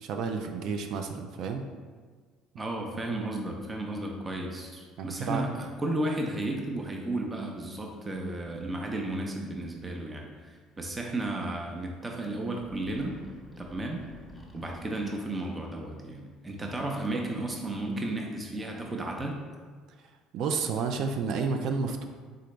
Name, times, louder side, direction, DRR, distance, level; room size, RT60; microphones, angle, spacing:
voice 1, 0.0-1.6 5.0-5.5 20.3-22.1, right 5 dB, 65° right, 5 dB, 0.4 m, -31 dB
voice 2, 2.6-13.2 13.6-14.0 14.5-19.4, right 1 dB, 25° right, 1 dB, 0.7 m, -33 dB
sound 1, 10.7-10.8 11.1-11.2 12.1-12.3 12.5-14.8, left 1 dB, ahead, 1.0 m, -49 dB
3.8 x 3.8 x 3.3 m, 1.5 s
hypercardioid pair, 65°, 0 cm